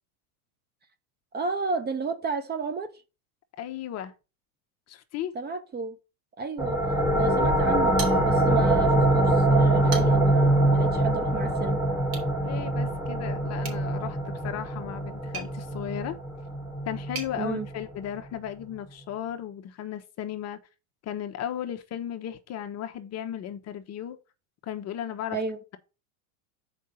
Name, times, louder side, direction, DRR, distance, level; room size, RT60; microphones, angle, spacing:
voice 1, 1.3-2.9 5.3-6.0 6.4-6.8 7.2-11.8 17.4-17.7 25.3-25.6, right 4 dB, 20° right, 1.0 m, -32 dB
voice 2, 3.6-4.1 4.9-5.4 12.4-16.1 16.9-20.6 21.0-24.2 24.6-25.4, left 10 dB, 35° left, 1.0 m, -35 dB
sound 1, 6.6-17.9, right 1 dB, 5° right, 1.7 m, -24 dB
sound 2, 8.0-8.7 9.1-9.2 9.7-10.4 12.0-12.3 13.6-17.3, right 5 dB, 60° right, 3.5 m, -41 dB
7.2 x 4.9 x 5.4 m
supercardioid pair, 125°, 44 cm